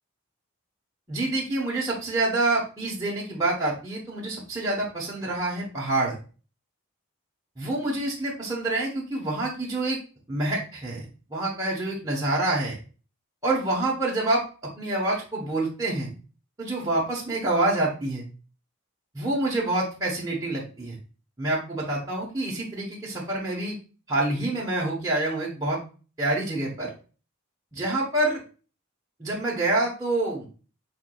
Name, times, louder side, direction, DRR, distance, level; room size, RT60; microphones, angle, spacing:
voice 1, 1.1-6.1 7.6-10.0 10.3-12.8 13.4-14.4 14.8-16.1 16.6-18.2 19.1-21.0 21.4-23.8 24.1-25.8 26.2-26.9 27.7-28.4 29.2-30.5, right 2 dB, 15° right, -5 dB, 0.9 m, -27 dB
5.0 x 4.6 x 2.3 m, 0.36 s
head